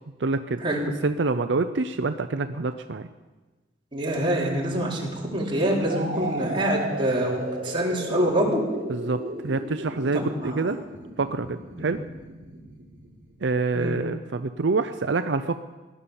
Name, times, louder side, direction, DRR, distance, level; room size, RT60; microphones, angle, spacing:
voice 1, 0.2-0.6 1.0-3.1 8.9-10.8 11.2-12.0 13.4-15.6, right 3 dB, 80° right, 9 dB, 0.6 m, -26 dB
voice 2, 3.9-8.6 10.1-10.6 13.7-14.0, right 1 dB, 30° right, -3 dB, 3.9 m, -25 dB
sound 1, 5.9-13.6, right 1 dB, 50° right, 4.0 m, -35 dB
17.5 x 11.5 x 7.1 m, 1.2 s
head